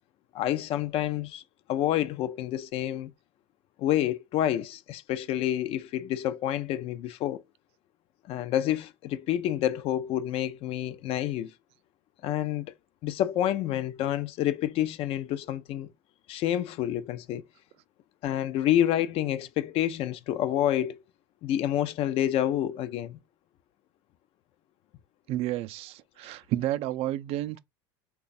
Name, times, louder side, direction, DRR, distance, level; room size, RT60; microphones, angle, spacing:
voice 1, 0.3-1.4 1.7-3.1 3.8-7.4 8.3-11.5 12.2-12.7 13.0-15.9 16.3-17.4 18.2-21.0 21.4-23.2, left 12 dB, 50° left, 0.4 m, -28 dB
voice 2, 25.3-27.6, right 14 dB, 55° right, 0.4 m, -31 dB
3.1 x 2.3 x 4.1 m
supercardioid pair, 95°, 12 cm